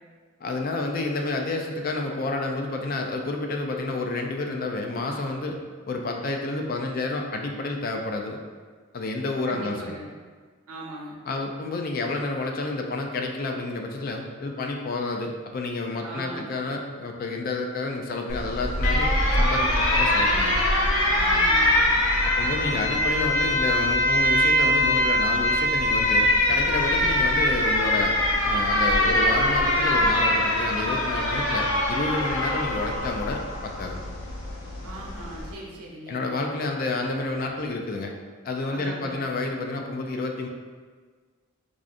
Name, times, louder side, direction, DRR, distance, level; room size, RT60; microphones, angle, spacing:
voice 1, 0.4-5.6 5.9-8.4 8.9-10.0 11.3-19.1 19.3-20.6 22.2-28.2 28.4-34.0 36.1-38.1 38.4-40.5, left 2 dB, 40° left, 2 dB, 0.3 m, -29 dB
voice 2, 9.5-10.0 10.7-11.1 16.0-16.5 21.2-21.8 22.8-22.9 34.8-36.2 38.7-39.2, right 2 dB, 85° right, -3 dB, 0.7 m, -38 dB
Alarm, 18.3-35.5, left 1 dB, 75° left, 0.6 m, -23 dB
4.8 x 2.5 x 2.4 m, 1.5 s
head